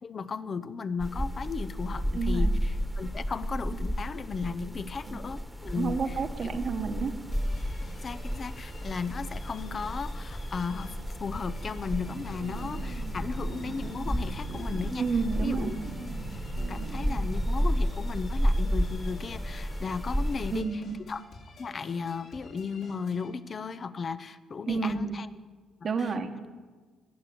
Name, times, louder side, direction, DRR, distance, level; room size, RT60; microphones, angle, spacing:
voice 1, 0.0-6.1 6.4-6.5 8.0-10.9 11.2-15.0 15.4-15.8 16.7-21.2 21.6-25.3 25.8-26.1, left 5 dB, 40° left, 14 dB, 0.7 m, -35 dB
sound 1, 1.0-20.6, equal, ahead, 1.5 m, -32 dB
voice 2, 2.1-2.5 5.1-5.2 5.8-7.1 15.0-15.7 20.5-21.0 24.7-25.2 25.8-26.5, right 5 dB, 50° right, 7 dB, 1.4 m, -30 dB
sound 2, 7.3-23.3, left 3 dB, 75° left, 4.8 m, -51 dB
sound 3, 12.0-17.7, right 4 dB, 80° right, 1.9 m, -42 dB
19.5 x 6.7 x 8.7 m, 1.4 s
cardioid pair, 90°, 0 cm